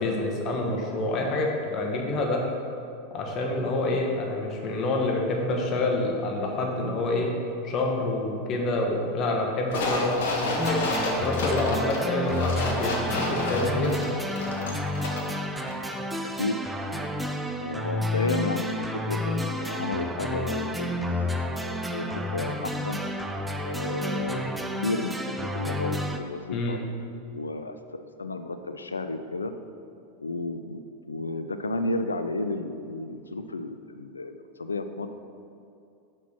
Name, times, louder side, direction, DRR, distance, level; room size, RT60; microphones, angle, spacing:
voice 1, 0.0-2.4 3.1-7.3 7.6-13.9 26.5-26.8, left 2 dB, 40° left, 0 dB, 1.2 m, -27 dB
sound 1, 9.7-15.4 15.7-15.8, left 2 dB, 65° left, 1.0 m, -31 dB
sound 2, 10.6-26.2, left 1 dB, 5° right, 0.5 m, -30 dB
voice 2, 17.6-21.1 21.5-23.0 23.6-26.8 27.3-29.5 30.2-30.8 31.1-35.1, left 2 dB, 85° left, 9 dB, 0.4 m, -32 dB
6.0 x 4.5 x 5.8 m, 2.6 s
figure-of-eight pair, 85°, 0 cm